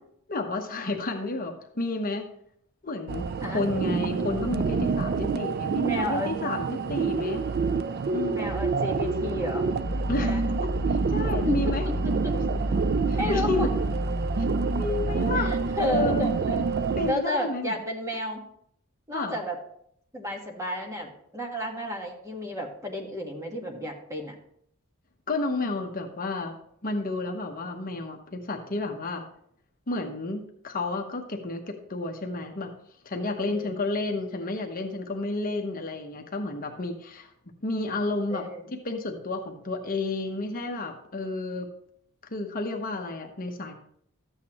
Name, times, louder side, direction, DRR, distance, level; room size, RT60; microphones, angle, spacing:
voice 1, 0.3-2.3 2.8-7.4 8.1-8.5 10.1-10.4 10.9-11.9 12.3-12.4 13.1-13.7 14.7-16.3 17.0-17.7 19.1-19.4 25.3-26.5 26.8-29.3 29.9-32.7 33.0-37.3 37.6-38.5 38.8-41.7 42.3-43.7, left 2 dB, 40° left, 3 dB, 1.0 m, -31 dB
sound 1, 3.1-17.1, right 5 dB, 45° right, 0.3 m, -28 dB
voice 2, 5.8-6.3 8.3-9.7 10.2-10.4 11.4-12.1 13.2-13.7 15.3-16.6 17.0-18.4 19.1-19.6 20.1-24.3 33.5-33.8 38.3-38.7, equal, 15° right, 1 dB, 1.4 m, -32 dB
sound 2, 9.8-15.5, equal, 75° right, 1.7 m, -30 dB
13.0 x 8.2 x 3.0 m, 0.68 s
head